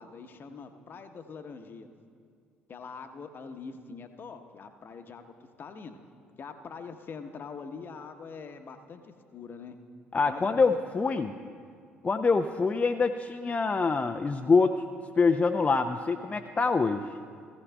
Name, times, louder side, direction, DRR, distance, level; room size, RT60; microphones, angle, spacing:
voice 1, 0.0-1.9 2.7-6.0 6.4-9.8 10.3-10.6, left 5 dB, 45° left, 7 dB, 1.0 m, -44 dB
voice 2, 10.1-11.3 12.0-14.8 15.2-17.0, left 4 dB, 25° left, 6 dB, 0.5 m, -25 dB
17.5 x 15.5 x 2.3 m, 2.2 s
figure-of-eight pair, 50°, 5 cm